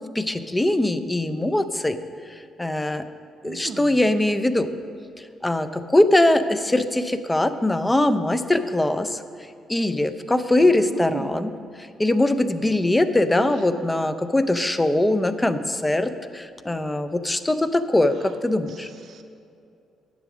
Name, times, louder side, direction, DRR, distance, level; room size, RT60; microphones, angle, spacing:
voice 1, 0.1-2.0 2.6-3.0 3.4-4.7 5.4-9.2 9.7-11.5 11.8-18.9, left 1 dB, 15° left, 11 dB, 0.5 m, -21 dB
voice 2, 3.4-4.0 10.6-11.5 13.3-13.9 18.7-19.2, right 6 dB, 60° right, 5 dB, 0.6 m, -38 dB
9.4 x 7.7 x 6.1 m, 2.5 s
cardioid pair, 90°, 0 cm